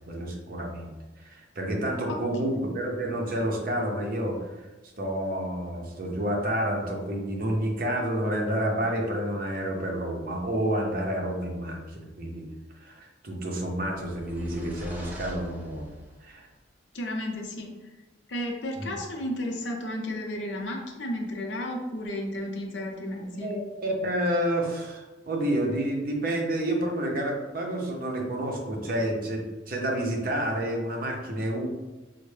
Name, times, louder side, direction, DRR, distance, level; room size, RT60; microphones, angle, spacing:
voice 1, 0.1-0.9 1.2-4.4 5.0-12.5 12.8-15.9 16.2-16.5 18.8-18.9 23.3-31.7, right 1 dB, 50° right, 0 dB, 0.7 m, -29 dB
voice 2, 2.1-2.7 16.9-17.8 18.3-23.5, left 1 dB, 70° left, 2 dB, 0.6 m, -33 dB
sound 1, 13.9-16.2, equal, 10° right, 0.5 m, -43 dB
4.3 x 2.1 x 3.2 m, 1.1 s
head